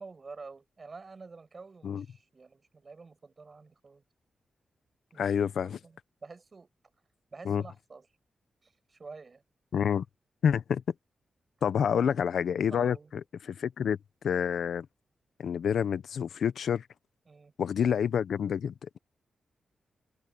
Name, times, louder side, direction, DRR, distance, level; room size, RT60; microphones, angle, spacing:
voice 1, 0.0-4.0 5.1-6.7 7.3-8.0 8.6-9.4 11.8-12.2 12.7-13.1 17.3-17.5, right 4 dB, 35° right, 5.9 m, -48 dB
voice 2, 5.2-5.8 7.4-7.6 9.7-10.0 10.4-10.8 11.6-14.0 14.2-14.9 15.4-16.9 17.6-19.0, left 8 dB, 80° left, 0.8 m, -28 dB
wide cardioid pair, 110°, 0 cm